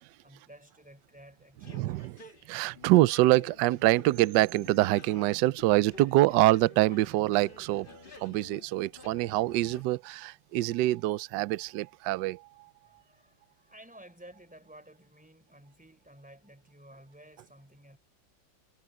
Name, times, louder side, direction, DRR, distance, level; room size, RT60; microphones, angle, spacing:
voice 1, 0.2-2.4 12.8-18.0, right 1 dB, 5° right, 3.8 m, -54 dB
sound 1, 1.6-9.8, left 3 dB, 30° left, 1.5 m, -51 dB
voice 2, 1.7-2.2 2.5-7.9 8.1-12.7, right 17 dB, 75° right, 1.1 m, -25 dB
omnidirectional pair, 2.2 m